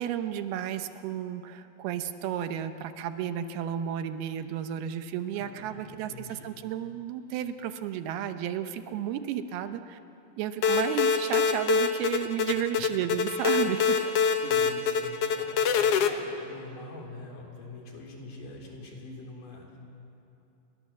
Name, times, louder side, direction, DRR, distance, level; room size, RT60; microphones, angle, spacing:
voice 1, 0.0-10.0 10.4-14.1, right 10 dB, 80° right, 9 dB, 2.9 m, -33 dB
voice 2, 5.3-6.6 12.5-12.8 14.4-19.8, left 2 dB, 55° left, 0 dB, 5.2 m, -44 dB
sound 1, 10.6-16.1, left 6 dB, 90° left, 1.3 m, -25 dB
29.5 x 23.0 x 7.4 m, 2.8 s
omnidirectional pair, 4.5 m